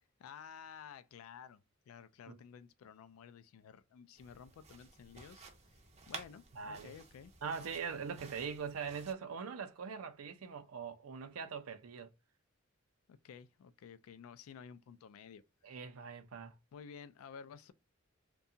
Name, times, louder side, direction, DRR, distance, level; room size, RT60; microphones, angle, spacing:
voice 1, 0.2-1.6 1.9-5.4 6.1-7.3 13.1-15.4 16.7-17.7, left 7 dB, 80° left, 0.3 m, -53 dB
sound 1, 4.2-9.1, right 5 dB, 30° right, 0.5 m, -53 dB
voice 2, 6.5-6.9 7.4-12.1 15.6-16.5, right 6 dB, 85° right, 0.5 m, -42 dB
2.7 x 2.2 x 2.5 m
head